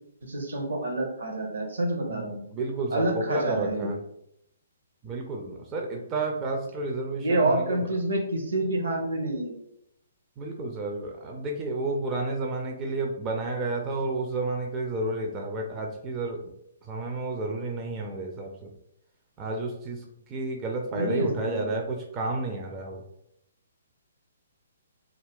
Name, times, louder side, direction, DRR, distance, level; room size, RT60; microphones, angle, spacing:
voice 1, 0.2-2.4 2.9-3.9 7.2-9.5 20.9-21.7, right 2 dB, 70° right, 2 dB, 0.7 m, -28 dB
voice 2, 2.1-4.0 5.0-7.9 10.4-16.5 16.9-18.7 19.4-23.0, right 2 dB, 25° right, 1 dB, 0.4 m, -31 dB
2.3 x 2.1 x 3.4 m, 0.77 s
figure-of-eight pair, 130°, 0 cm